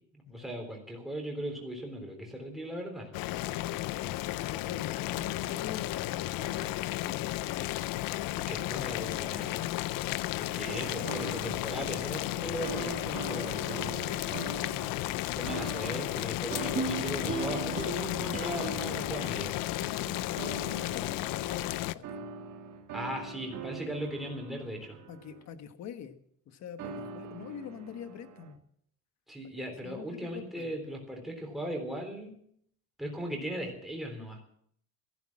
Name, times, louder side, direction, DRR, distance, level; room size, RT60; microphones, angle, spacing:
voice 1, 0.1-3.1 8.5-9.6 10.5-13.6 15.3-19.6 22.9-25.0 29.3-32.4 33.0-34.4, right 1 dB, ahead, 0 dB, 3.7 m, -38 dB
Boiling, 3.1-21.9, left 17 dB, 85° left, 0.6 m, -33 dB
voice 2, 3.7-7.7 8.6-9.7 15.1-15.2 19.7-22.2 25.1-26.2 26.5-28.6 29.5-30.8, left 8 dB, 55° left, 9 dB, 1.4 m, -44 dB
sound 1, 10.7-12.3 12.6-15.0 15.5-25.5 26.8-28.5, right 4 dB, 65° right, 2.1 m, -43 dB
sound 2, 16.7-20.0 20.5-20.6, right 4 dB, 25° right, 1.8 m, -37 dB
15.0 x 11.0 x 7.5 m, 0.67 s
cardioid pair, 170°, 33 cm